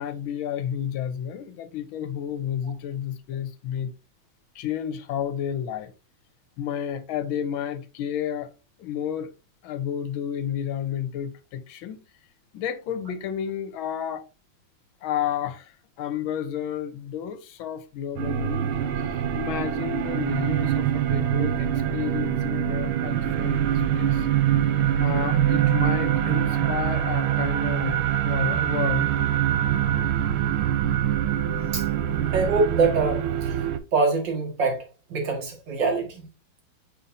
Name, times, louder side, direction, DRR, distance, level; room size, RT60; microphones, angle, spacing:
voice 1, 0.0-3.9 4.5-5.9 6.6-8.5 8.8-9.3 9.6-12.0 12.5-14.2 15.0-24.3 25.0-28.0 28.2-29.1, left 9 dB, 85° left, 1.6 m, -31 dB
sound 1, 18.2-33.8, right 10 dB, 90° right, 1.5 m, -24 dB
voice 2, 32.3-33.6 33.9-36.3, right 4 dB, 60° right, 2.6 m, -24 dB
7.0 x 5.7 x 2.7 m
omnidirectional pair, 2.2 m